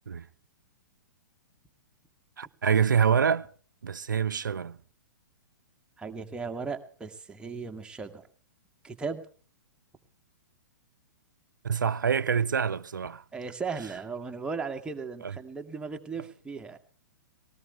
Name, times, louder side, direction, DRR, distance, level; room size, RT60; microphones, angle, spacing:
voice 1, 2.4-3.5 3.8-4.8 11.6-13.2 15.2-15.3, right 7 dB, 70° right, 0.6 m, -26 dB
voice 2, 6.0-8.3 8.8-9.2 13.3-16.8, right 5 dB, 10° right, 2.1 m, -36 dB
20.0 x 18.5 x 3.4 m
figure-of-eight pair, 115°, 11 cm